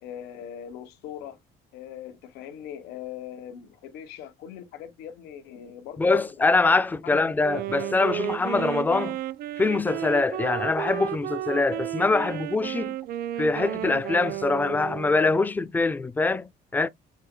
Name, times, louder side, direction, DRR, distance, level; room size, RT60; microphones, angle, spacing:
voice 1, 0.0-1.4 1.7-6.3 7.0-7.2, left 10 dB, 90° left, 1.1 m, -40 dB
voice 2, 6.0-9.2 9.6-13.0 13.4-16.9, left 3 dB, 10° left, 0.3 m, -24 dB
Wind instrument woodwind instrument, 7.4-15.5, right 14 dB, 60° right, 0.4 m, -33 dB
6.6 x 2.9 x 2.2 m
cardioid pair, 110°, 17 cm